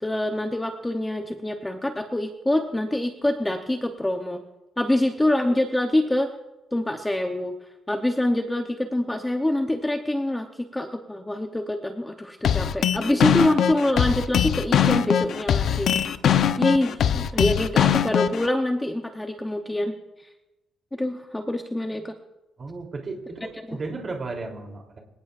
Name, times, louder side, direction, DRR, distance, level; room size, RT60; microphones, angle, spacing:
voice 1, 0.0-4.4 4.8-6.3 6.7-7.6 7.9-15.9 16.6-20.3 20.9-22.1 23.7-23.8, left 1 dB, 10° left, 4 dB, 0.8 m, -25 dB
sound 1, 12.4-18.5, left 9 dB, 60° left, 0.7 m, -21 dB
voice 2, 22.6-25.0, right 3 dB, 30° right, 2 dB, 3.2 m, -34 dB
25.5 x 17.5 x 2.5 m, 1.0 s
cardioid pair, 160°, 0 cm